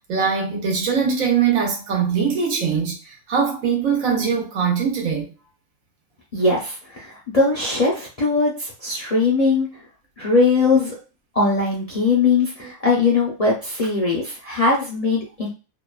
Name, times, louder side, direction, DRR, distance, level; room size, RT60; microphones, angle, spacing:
voice 1, 0.1-5.2, right 6 dB, 75° right, 1.2 m, -22 dB
voice 2, 6.3-9.7 10.2-10.9 11.3-15.5, left 3 dB, 45° left, 0.5 m, -20 dB
2.8 x 2.1 x 2.3 m
omnidirectional pair, 1.4 m